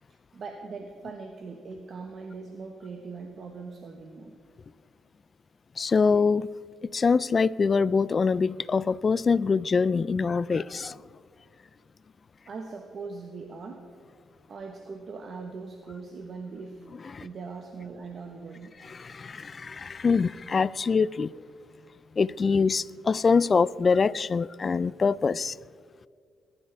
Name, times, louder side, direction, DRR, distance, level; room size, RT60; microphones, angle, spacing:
voice 1, 0.3-4.4 12.5-13.9 14.5-16.9 17.2-18.8, right 4 dB, 50° right, 1.2 m, -40 dB
voice 2, 5.8-6.5 6.9-11.0 17.1-17.3 18.8-21.3 22.2-25.6, left 5 dB, 35° left, 0.3 m, -24 dB
20.0 x 12.5 x 3.5 m
cardioid pair, 90°, 0 cm